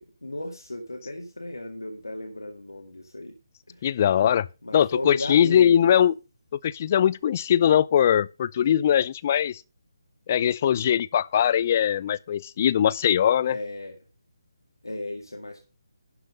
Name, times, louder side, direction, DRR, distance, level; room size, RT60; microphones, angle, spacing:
voice 1, 0.0-3.4 3.7-4.0 4.6-5.9 13.4-14.0 14.8-15.7, left 2 dB, 85° left, 1.9 m, -35 dB
voice 2, 3.8-4.5 4.7-6.1 6.6-9.6 10.3-13.6, left 9 dB, 35° left, 0.4 m, -21 dB
11.5 x 5.8 x 5.3 m
figure-of-eight pair, 150°, 2 cm